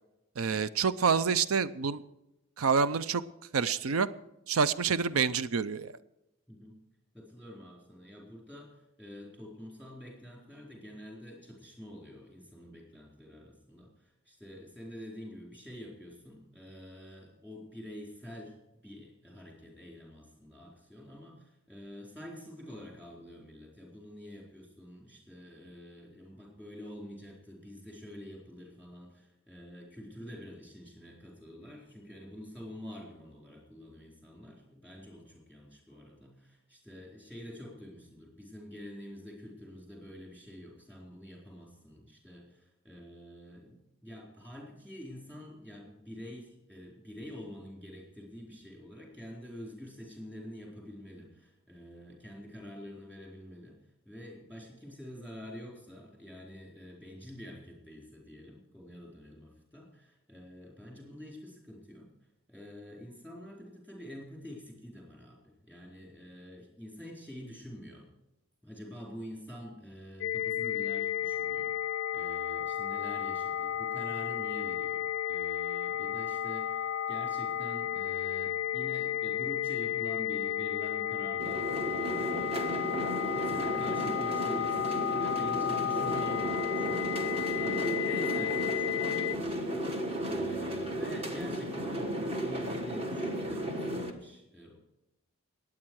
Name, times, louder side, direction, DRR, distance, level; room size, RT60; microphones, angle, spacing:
voice 1, 0.4-2.0 2.6-3.2 3.5-4.1 4.5-5.9, right 5 dB, 75° right, 16 dB, 0.5 m, -27 dB
voice 2, 6.5-6.8 7.1-53.8 54.0-62.1 62.5-68.1 68.6-94.7, equal, 5° right, -1 dB, 4.1 m, -47 dB
sound 1, 70.2-89.4, left 10 dB, 50° left, 0.4 m, -33 dB
sound 2, 81.4-94.1, right 1 dB, 25° right, 1.3 m, -34 dB
20.0 x 8.6 x 4.7 m, 0.93 s
head